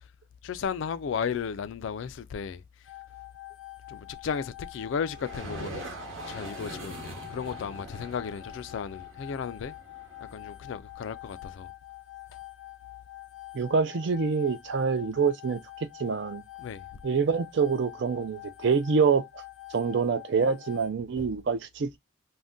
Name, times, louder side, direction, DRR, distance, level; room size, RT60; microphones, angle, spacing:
voice 1, 0.4-2.6 3.9-6.0 6.3-9.7 10.3-11.7 16.6-16.8 21.2-21.3, left 6 dB, 65° left, 0.3 m, -34 dB
sound 1, 2.8-20.9, left 18 dB, 85° left, 0.7 m, -46 dB
sound 2, 5.1-10.8, right 2 dB, 80° right, 1.0 m, -43 dB
voice 2, 13.5-16.4 17.0-19.3 19.7-22.0, right 5 dB, 60° right, 0.4 m, -26 dB
2.6 x 2.2 x 3.5 m
head